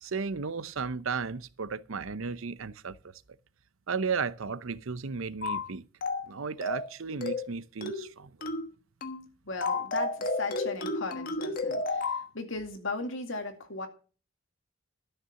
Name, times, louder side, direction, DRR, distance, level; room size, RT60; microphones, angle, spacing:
voice 1, 0.0-3.0 3.9-5.9 6.3-8.5, right 5 dB, 75° right, 0.7 m, -34 dB
sound 1, 5.4-5.7 6.0-6.3 6.6-6.9 7.2-7.5 7.8-8.1 8.4-8.7 9.0-9.2 9.6-12.3, left 2 dB, 45° left, 1.3 m, -32 dB
voice 2, 9.4-13.9, left 3 dB, 65° left, 2.2 m, -37 dB
12.5 x 6.8 x 6.9 m
head